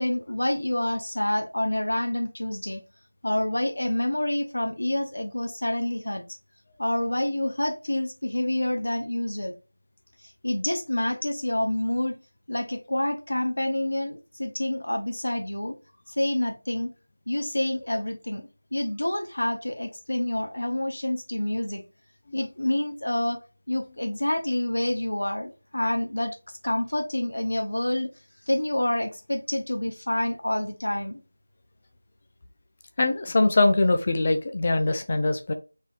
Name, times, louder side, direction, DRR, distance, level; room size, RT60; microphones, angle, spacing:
voice 1, 0.0-2.8 3.2-6.2 6.8-9.5 10.2-12.2 12.5-15.8 16.1-16.9 17.3-21.8 22.3-23.4 23.7-28.1 28.5-31.2, left 1 dB, 80° left, 5 dB, 0.8 m, -28 dB
voice 2, 33.0-35.5, left 2 dB, 15° left, 6 dB, 0.3 m, -22 dB
4.1 x 2.7 x 3.4 m, 0.32 s
figure-of-eight pair, 180°, 0 cm